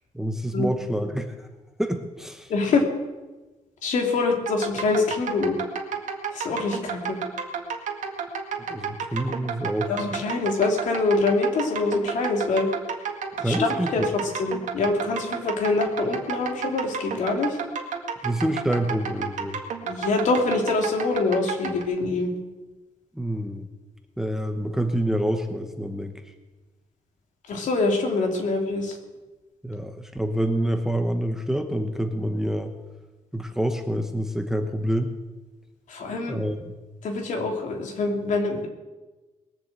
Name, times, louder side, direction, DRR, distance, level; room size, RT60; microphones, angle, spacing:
voice 1, 0.1-1.5 1.8-2.5 8.6-9.9 13.4-14.1 18.2-19.6 23.1-23.7 24.2-26.2 29.6-32.7 33.3-35.1 36.3-36.7, right 1 dB, 5° right, 6 dB, 0.9 m, -27 dB
voice 2, 2.5-2.8 3.8-5.6 6.3-7.2 9.9-12.7 13.4-17.6 19.8-22.3 27.5-29.0 35.9-36.4 37.0-38.7, left 3 dB, 70° left, 2 dB, 2.9 m, -25 dB
sound 1, 4.5-21.8, right 6 dB, 65° right, 2.0 m, -32 dB
20.5 x 7.2 x 8.0 m, 1.1 s
wide cardioid pair, 170°, 13 cm